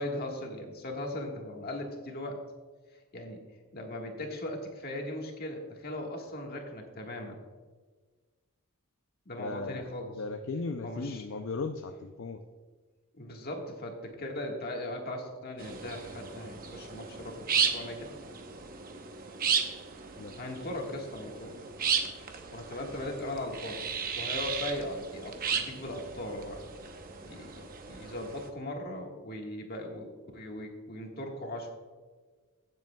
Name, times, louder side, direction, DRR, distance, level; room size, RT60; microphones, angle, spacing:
voice 1, 0.0-2.4 3.1-3.4 3.7-7.4 9.2-10.1 10.8-11.2 13.1-18.1 20.4-21.6 22.5-26.7 27.2-31.7, left 1 dB, 45° left, 1 dB, 1.6 m, -38 dB
voice 2, 9.4-12.4 20.2-20.4, left 3 dB, 65° left, 6 dB, 0.5 m, -37 dB
sound 1, 15.6-28.5, right 6 dB, 45° right, 0.9 m, -35 dB
16.5 x 7.7 x 2.3 m, 1.4 s
head